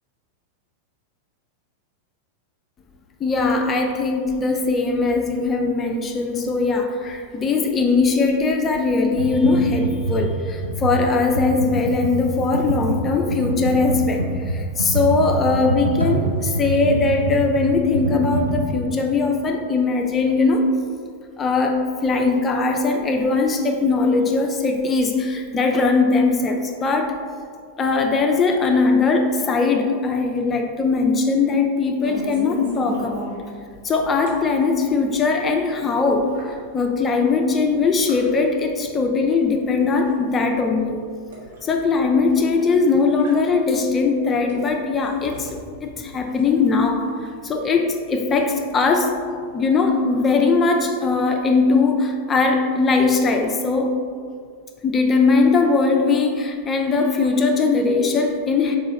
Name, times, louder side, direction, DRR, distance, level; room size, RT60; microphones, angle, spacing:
voice 1, 3.2-20.6 21.4-27.2 27.8-33.3 33.8-41.0 41.6-49.2 49.5-54.0 54.8-58.8, left 4 dB, 25° left, 3 dB, 0.3 m, -20 dB
Computer keyboard, 9.1-18.6, right 2 dB, 85° right, 0.5 m, -25 dB
sound 1, 32.0-49.6, equal, 65° right, 1.0 m, -40 dB
3.6 x 2.8 x 4.1 m, 2.1 s
figure-of-eight pair, 90°, 0 cm